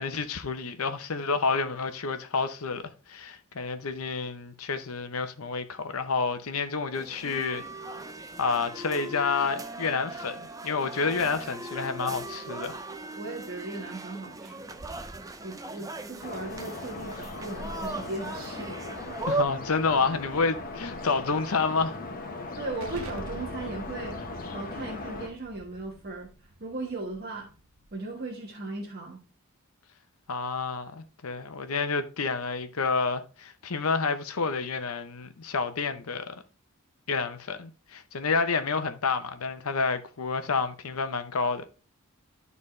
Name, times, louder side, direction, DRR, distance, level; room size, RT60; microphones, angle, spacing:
voice 1, 0.0-8.0 8.4-12.8 19.3-22.0 30.3-36.3 37.1-41.6, left 4 dB, 70° left, 0.8 m, -29 dB
sound 1, 6.9-19.4, right 2 dB, 15° right, 0.5 m, -38 dB
voice 2, 13.2-14.7 15.4-18.8 19.1-19.2 22.6-24.2 24.5-27.5 27.9-29.2, right 2 dB, 45° right, 1.4 m, -37 dB
sound 2, 16.2-25.3, left 2 dB, 40° left, 1.2 m, -38 dB
Explosion, 22.8-28.2, right 1 dB, 70° right, 0.9 m, -46 dB
12.0 x 4.1 x 3.2 m
head